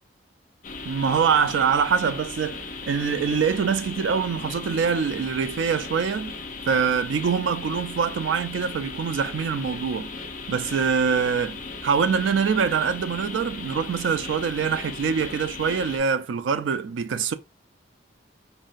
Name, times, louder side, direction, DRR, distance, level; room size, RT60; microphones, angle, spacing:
sound 1, 0.6-16.0, left 3 dB, 40° left, 0.5 m, -37 dB
voice 1, 0.9-6.4 6.7-10.1 10.5-11.6 11.8-17.3, right 6 dB, 80° right, 0.4 m, -24 dB
3.9 x 2.0 x 2.4 m
head